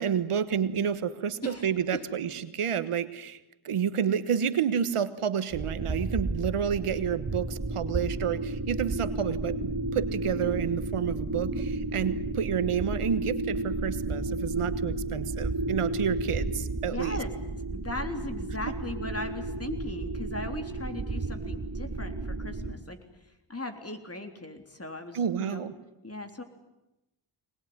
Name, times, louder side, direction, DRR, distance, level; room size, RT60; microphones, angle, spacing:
voice 1, 0.0-3.4 3.6-17.2 18.7-18.8 25.1-25.7, right 8 dB, 90° right, 12 dB, 1.4 m, -30 dB
voice 2, 1.4-1.7 14.6-14.7 15.9-16.0 16.8-17.3 17.7-23.0 23.5-25.6 26.0-26.4, left 2 dB, 30° left, 6 dB, 3.6 m, -38 dB
sound 1, 5.5-22.7, right 2 dB, 40° right, 4.0 m, -32 dB
23.5 x 20.0 x 9.6 m, 0.94 s
cardioid pair, 55°, 50 cm